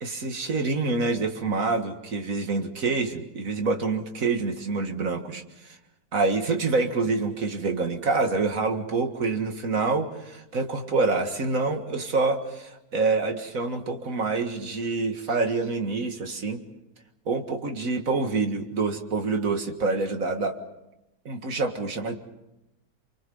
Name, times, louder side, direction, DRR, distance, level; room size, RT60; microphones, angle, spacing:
voice 1, 0.0-5.8 6.1-16.6 17.3-20.6 21.3-22.2, right 3 dB, 55° right, 5 dB, 2.2 m, -26 dB
30.0 x 24.0 x 5.5 m, 0.91 s
omnidirectional pair, 1.8 m